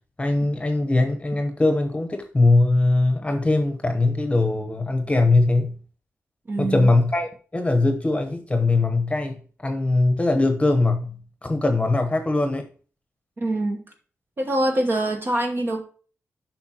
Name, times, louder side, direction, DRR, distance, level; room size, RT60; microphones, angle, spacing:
voice 1, 0.2-5.8 6.6-12.7, left 2 dB, 20° left, 0.9 m, -21 dB
voice 2, 6.5-6.9 13.4-13.8 14.4-15.8, right 1 dB, 40° right, 1.1 m, -24 dB
8.3 x 5.7 x 2.9 m
cardioid pair, 70°, 5 cm